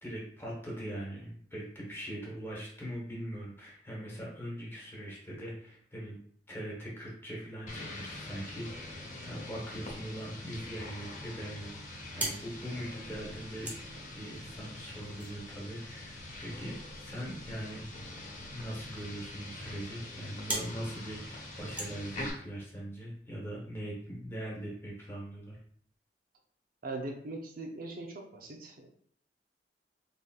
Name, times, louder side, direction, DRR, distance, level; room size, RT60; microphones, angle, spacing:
voice 1, 0.0-6.2 6.5-13.7 14.1-17.8 18.5-25.6, right 1 dB, 15° left, -4 dB, 1.2 m, -41 dB
sound 1, 7.7-22.3, left 2 dB, 45° left, 0.9 m, -44 dB
sound 2, 11.9-22.7, right 1 dB, 10° right, 1.0 m, -44 dB
voice 2, 26.8-28.9, right 2 dB, 55° right, 1 dB, 0.6 m, -40 dB
3.9 x 3.4 x 2.3 m, 0.62 s
head